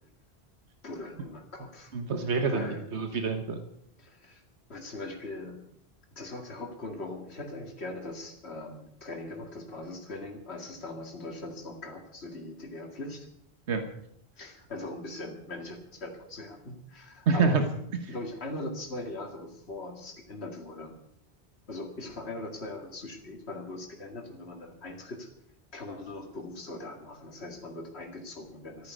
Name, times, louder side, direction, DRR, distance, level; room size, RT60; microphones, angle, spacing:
voice 1, 0.8-1.9 2.5-2.8 4.0-4.4 4.7-5.6 6.2-13.3 14.4-17.6 18.1-20.9 21.7-25.3 25.7-28.9, left 2 dB, 75° left, 3 dB, 2.5 m, -40 dB
voice 2, 1.9-3.6 13.7-13.8 17.3-17.7 18.0-18.1, right 4 dB, 90° right, 7 dB, 1.5 m, -27 dB
14.0 x 10.0 x 9.3 m, 0.72 s
omnidirectional pair, 1.1 m